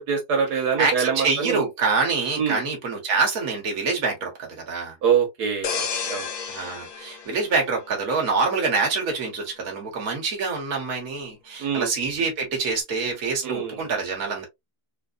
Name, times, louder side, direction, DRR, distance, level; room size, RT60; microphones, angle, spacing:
voice 1, 0.0-1.6 2.4-2.6 5.0-6.3 11.6-11.9 13.4-13.8, right 7 dB, 90° right, 1.7 m, -24 dB
voice 2, 0.8-5.0 6.5-14.5, right 4 dB, 65° right, 1.7 m, -26 dB
sound 1, 5.6-8.3 8.8-9.0, left 6 dB, 75° left, 1.4 m, -32 dB
4.0 x 2.7 x 2.5 m
omnidirectional pair, 1.7 m